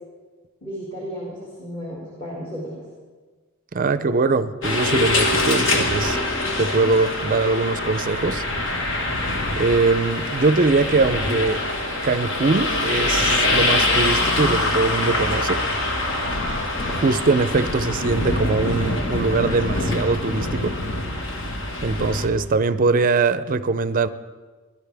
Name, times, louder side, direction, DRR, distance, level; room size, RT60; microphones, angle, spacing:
voice 1, 0.6-2.8, equal, 25° left, -5 dB, 2.2 m, -33 dB
voice 2, 3.7-6.2 6.6-8.4 9.6-11.6 12.0-15.6 16.9-20.7 21.8-24.1, right 3 dB, 40° right, 13 dB, 0.5 m, -21 dB
sound 1, 4.6-22.3, left 2 dB, 60° left, 1.5 m, -24 dB
17.0 x 11.5 x 3.4 m, 1.4 s
head